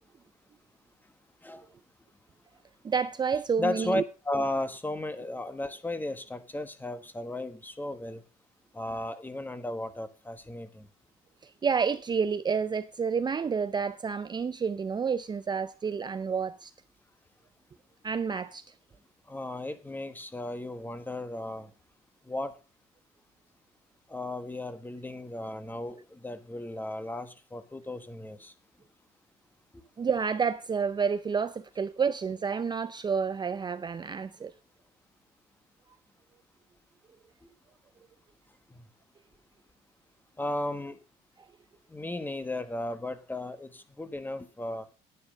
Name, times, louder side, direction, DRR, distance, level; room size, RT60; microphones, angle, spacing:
voice 1, 2.8-4.0 11.4-16.7 18.0-18.6 30.0-34.5, right 6 dB, 25° right, 0.5 m, -29 dB
voice 2, 3.6-8.2 8.7-10.9 19.3-21.7 22.3-22.5 24.1-28.5 40.4-41.0 41.9-44.8, left 1 dB, 10° left, 1.4 m, -35 dB
9.7 x 9.7 x 5.2 m
cardioid pair, 110°, 17 cm